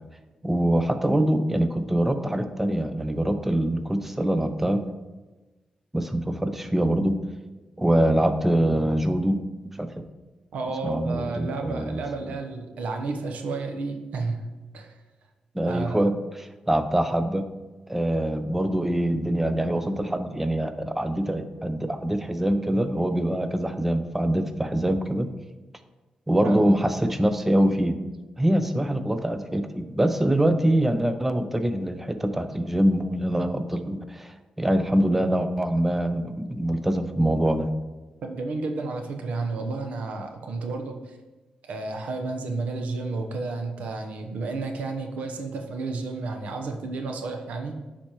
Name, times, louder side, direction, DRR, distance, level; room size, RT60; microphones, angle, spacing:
voice 1, 0.4-4.8 5.9-7.2 7.8-9.4 9.8-9.9 10.8-12.0 15.5-17.4 17.9-25.3 26.3-28.0 28.4-37.7, right 1 dB, 10° right, 9 dB, 0.5 m, -24 dB
voice 2, 10.5-14.5 14.7-15.0 15.6-16.0 26.4-26.7 38.2-41.2 41.7-47.8, right 3 dB, 85° right, 5 dB, 0.8 m, -31 dB
10.0 x 4.3 x 3.0 m, 1.2 s
cardioid pair, 75°, 2 cm